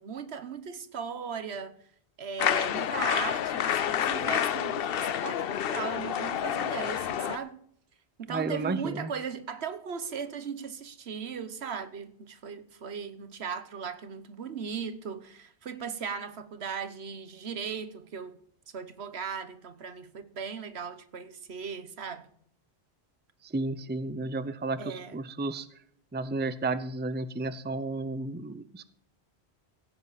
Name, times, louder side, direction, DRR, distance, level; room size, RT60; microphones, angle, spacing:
voice 1, 0.0-1.7 2.2-7.6 8.2-18.4 18.7-22.3 24.8-25.2, right 6 dB, 75° right, 1.3 m, -37 dB
sound 1, 2.4-7.4, left 9 dB, 65° left, 0.8 m, -29 dB
voice 2, 8.3-9.1 23.5-25.7 26.1-28.8, right 3 dB, 15° right, 0.5 m, -32 dB
16.0 x 9.9 x 4.1 m
omnidirectional pair, 1.1 m